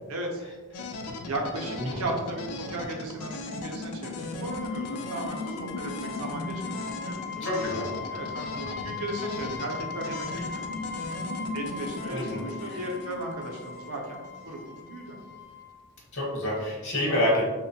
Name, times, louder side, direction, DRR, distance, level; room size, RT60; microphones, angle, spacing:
voice 1, 0.1-0.4 1.3-7.7 8.1-10.6 11.5-15.2, right 2 dB, 75° right, 0 dB, 0.6 m, -36 dB
sound 1, 0.7-14.6, left 2 dB, 85° left, 0.4 m, -37 dB
sound 2, 4.4-15.9, left 6 dB, 15° left, 0.3 m, -40 dB
voice 2, 7.4-7.9 12.1-12.4 12.7-12.8 16.1-17.4, left 1 dB, 55° left, -4 dB, 0.9 m, -27 dB
2.9 x 2.1 x 2.7 m, 1.3 s
head